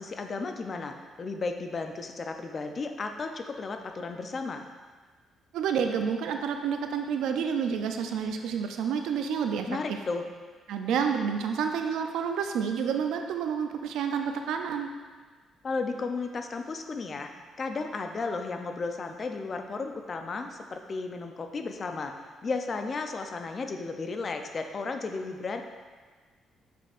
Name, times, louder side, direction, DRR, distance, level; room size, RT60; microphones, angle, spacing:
voice 1, 0.0-4.6 9.7-10.3 15.6-17.3 17.6-22.1 22.4-25.6, left 4 dB, 40° left, 6 dB, 0.5 m, -34 dB
voice 2, 5.5-10.0 10.7-14.9, right 7 dB, 85° right, 5 dB, 0.5 m, -29 dB
7.5 x 5.3 x 2.5 m, 1.4 s
cardioid pair, 90°, 0 cm